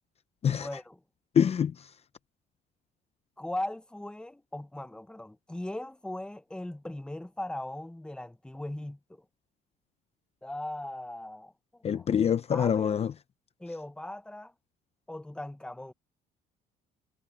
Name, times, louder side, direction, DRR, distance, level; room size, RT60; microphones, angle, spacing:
voice 1, 0.5-1.0 3.4-9.2 10.4-12.1 12.5-13.0 13.6-14.5 15.1-15.9, left 1 dB, 5° left, 1.0 m, -39 dB
voice 2, 1.4-1.7 11.8-13.1, left 8 dB, 35° left, 0.7 m, -25 dB
cardioid pair, 110°, 17 cm